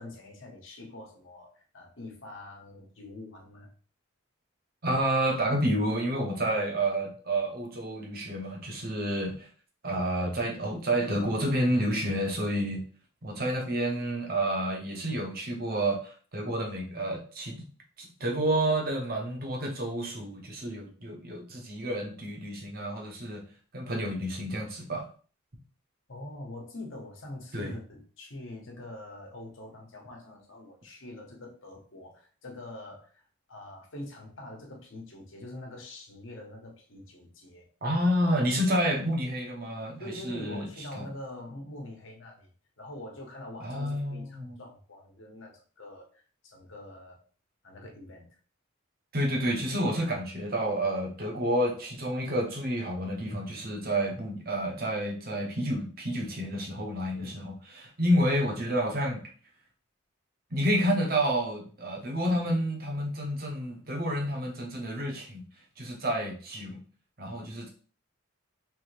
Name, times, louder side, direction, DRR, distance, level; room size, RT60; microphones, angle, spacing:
voice 1, 0.0-3.7 26.1-37.7 40.0-42.5 42.8-47.2 47.6-48.3 57.1-57.5, left 1 dB, 65° left, 1 dB, 1.1 m, -44 dB
voice 2, 4.8-9.5 9.8-12.8 13.2-17.7 18.0-23.4 23.7-25.0 27.5-27.7 37.8-40.7 40.9-41.1 43.6-44.6 49.1-59.3 60.5-65.4 65.8-66.8 67.2-67.7, right 1 dB, 45° right, 1 dB, 1.0 m, -29 dB
3.4 x 3.4 x 3.3 m, 0.41 s
head